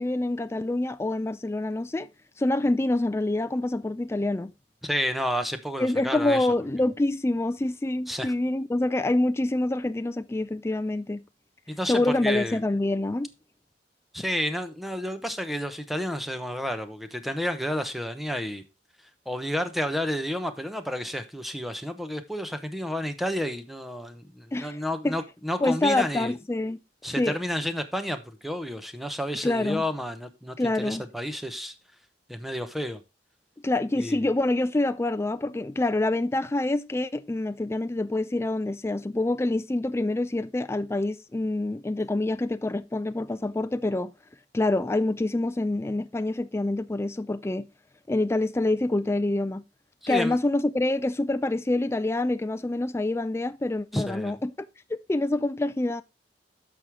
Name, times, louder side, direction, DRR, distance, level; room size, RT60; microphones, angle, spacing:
voice 1, 0.0-2.1 2.4-4.5 5.8-11.2 11.9-13.3 24.5-25.2 25.6-26.8 27.2-27.4 29.4-29.8 30.6-31.0 33.6-44.1 44.5-47.7 48.1-49.6 50.1-54.5 54.9-56.0, left 2 dB, 15° left, 0.4 m, -26 dB
voice 2, 4.8-6.5 8.1-8.3 11.7-12.6 14.1-18.6 19.3-26.3 27.0-31.7 32.3-33.0 34.0-34.2 50.0-50.4 53.9-54.3, equal, ahead, 0.9 m, -31 dB
10.5 x 6.3 x 3.5 m
head